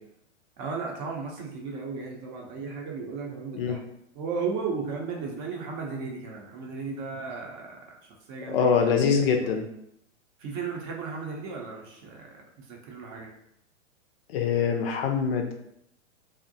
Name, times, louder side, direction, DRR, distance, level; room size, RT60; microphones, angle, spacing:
voice 1, 0.6-3.8 4.1-7.8 8.3-9.0 10.4-13.3, right 5 dB, 40° right, 0 dB, 0.6 m, -35 dB
voice 2, 8.5-9.7 14.3-15.5, left 6 dB, 50° left, 4 dB, 0.5 m, -24 dB
2.5 x 2.1 x 2.6 m, 0.75 s
hypercardioid pair, 110°, 37 cm